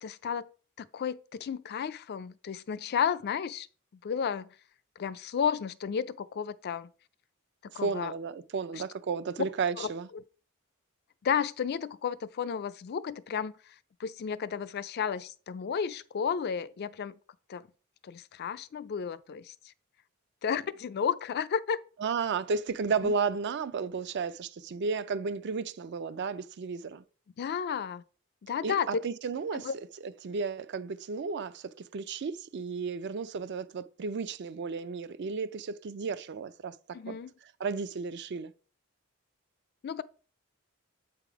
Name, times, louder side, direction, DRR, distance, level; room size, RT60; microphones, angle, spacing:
voice 1, 0.0-0.5 0.9-3.7 4.0-4.5 5.0-6.9 7.7-8.1 8.8-8.9 9.8-10.2 11.2-13.5 14.0-17.2 17.5-17.6 18.0-19.5 20.4-21.8 23.0-23.1 27.4-28.0 28.4-29.0 29.5-29.7 36.9-37.3 39.8-40.0, left 7 dB, 50° left, 0.4 m, -32 dB
voice 2, 7.7-10.1 22.0-27.0 28.6-29.7 30.0-36.8 37.1-37.2 37.6-38.5, right 5 dB, 55° right, 0.4 m, -33 dB
8.2 x 3.5 x 4.7 m
head